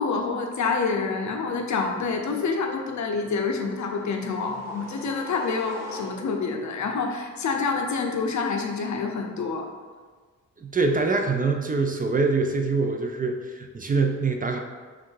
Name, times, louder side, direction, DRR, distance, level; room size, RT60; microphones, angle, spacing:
voice 1, 0.0-9.7, left 4 dB, 65° left, 2 dB, 0.6 m, -27 dB
sound 1, 3.4-6.6, equal, 10° right, 1.2 m, -42 dB
voice 2, 10.6-14.6, right 3 dB, 25° right, 4 dB, 0.4 m, -24 dB
3.5 x 2.5 x 4.6 m, 1.5 s
cardioid pair, 65°, 31 cm